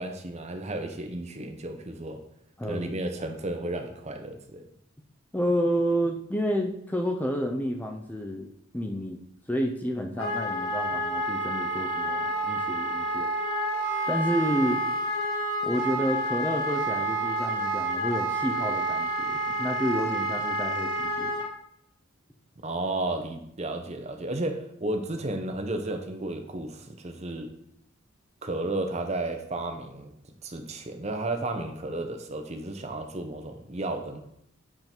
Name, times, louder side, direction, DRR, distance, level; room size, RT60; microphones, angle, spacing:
voice 1, 0.0-2.2 2.6-4.6 22.6-27.5 28.4-30.1 30.4-34.2, right 2 dB, 30° right, 6 dB, 0.7 m, -33 dB
voice 2, 2.6-2.9 5.3-8.5 8.7-9.2 9.5-13.3 14.1-14.8 15.6-21.3, equal, 10° left, 3 dB, 0.5 m, -30 dB
Wind instrument woodwind instrument, 10.2-21.5, right 1 dB, 70° left, 1.8 m, -29 dB
7.9 x 3.7 x 4.4 m, 0.73 s
head